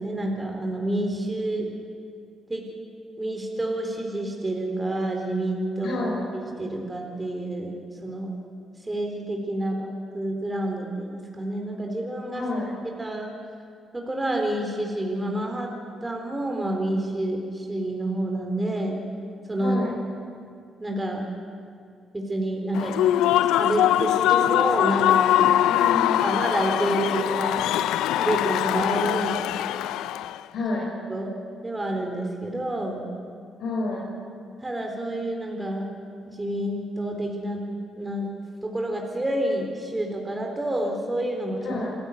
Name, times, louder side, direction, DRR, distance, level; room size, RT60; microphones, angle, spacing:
voice 1, 0.0-1.7 2.5-2.7 3.2-6.1 6.3-8.3 8.8-12.4 13.0-13.3 13.9-15.7 16.0-19.0 19.5-19.8 20.8-21.2 22.1-23.0 23.5-25.5 26.2-27.6 28.2-29.5 31.1-31.3 31.6-33.1 34.6-35.9 36.2-37.6 38.0-38.3 38.6-41.8, right 1 dB, 15° right, 1 dB, 3.9 m, -28 dB
voice 2, 5.8-6.2 12.3-12.7 19.6-19.9 25.7-26.4 30.5-30.9 33.6-34.1 41.6-42.0, left 2 dB, 75° left, -4 dB, 5.1 m, -29 dB
Human voice / Cheering / Applause, 22.7-30.4, left 12 dB, 90° left, 0.5 m, -22 dB
27.0 x 13.5 x 9.5 m, 2.4 s
cardioid pair, 90°, 0 cm